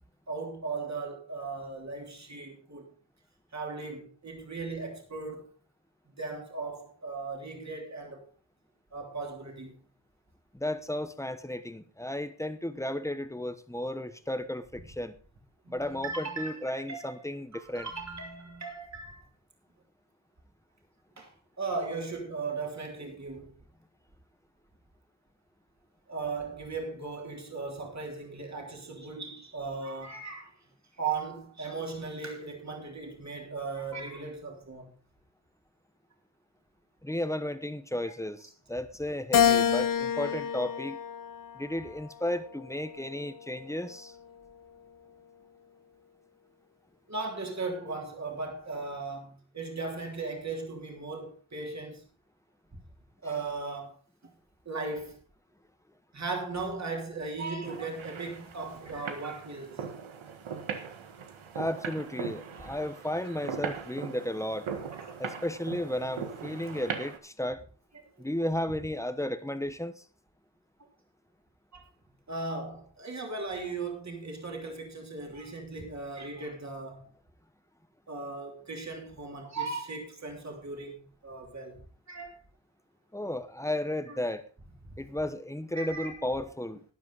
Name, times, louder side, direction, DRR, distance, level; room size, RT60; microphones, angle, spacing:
voice 1, 0.3-2.9 3.5-5.4 6.2-8.2 8.9-9.8 15.6-17.1 17.5-19.2 21.2-21.3 21.6-23.5 26.1-30.5 31.0-34.9 38.0-38.1 47.1-52.0 52.7-52.8 53.2-54.0 54.6-55.2 56.1-59.8 61.6-61.8 65.0-65.2 66.7-66.8 71.7-71.8 72.3-77.1 78.1-81.8 82.1-82.4 84.1-84.2 85.7-86.1, right 3 dB, 35° right, 3.2 m, -37 dB
voice 2, 10.5-15.1 15.7-17.9 37.0-41.0 41.5-44.1 61.5-64.7 65.2-67.6 68.2-70.0 83.1-84.4 85.0-86.8, left 1 dB, 5° left, 1.1 m, -34 dB
Keyboard (musical), 39.3-41.8 42.4-43.6, left 8 dB, 45° left, 0.6 m, -28 dB
sound 1, 57.7-67.2, right 6 dB, 90° right, 1.7 m, -40 dB
12.5 x 10.5 x 4.0 m
wide cardioid pair, 95°, 47 cm